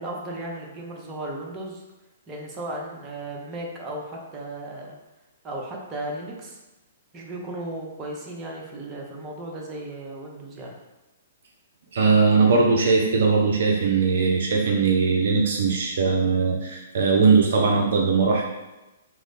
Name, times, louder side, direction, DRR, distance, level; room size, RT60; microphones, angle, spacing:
voice 1, 0.0-1.8 2.3-4.9 5.4-6.6 7.1-10.8, right 1 dB, 25° right, -1 dB, 0.6 m, -35 dB
voice 2, 11.9-18.4, right 4 dB, 60° right, 0 dB, 0.4 m, -20 dB
3.0 x 2.0 x 4.0 m, 1.0 s
figure-of-eight pair, 120°, 0 cm